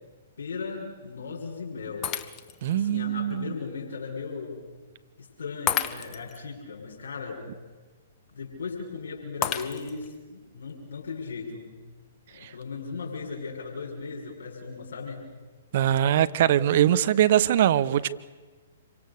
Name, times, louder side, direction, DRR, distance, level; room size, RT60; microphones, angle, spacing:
voice 1, 0.4-2.1 2.7-4.6 5.2-7.4 8.3-11.7 12.3-15.2, left 4 dB, 70° left, -1 dB, 5.8 m, -37 dB
Shatter, 2.0-2.7 3.3-3.4 5.7-6.4 9.4-10.2, left 8 dB, 25° left, 1.4 m, -31 dB
voice 2, 2.6-3.5 12.4-12.5 15.7-18.1, right 11 dB, 50° right, 14 dB, 1.1 m, -22 dB
27.5 x 24.5 x 6.8 m, 1.3 s
figure-of-eight pair, 120°, 0 cm